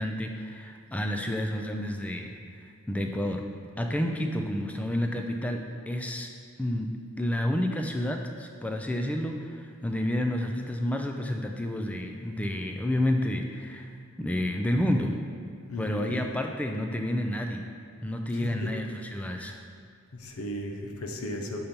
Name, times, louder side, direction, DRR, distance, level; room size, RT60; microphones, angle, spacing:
voice 1, 0.0-2.3 2.9-3.4 3.8-6.3 6.6-6.9 7.2-13.9 14.2-15.2 15.8-17.7 18.0-19.6, left 1 dB, 5° left, 4 dB, 0.3 m, -30 dB
voice 2, 15.7-16.2 18.3-18.7 20.1-21.6, left 1 dB, 80° left, 3 dB, 0.7 m, -35 dB
5.5 x 4.4 x 5.1 m, 2.2 s
head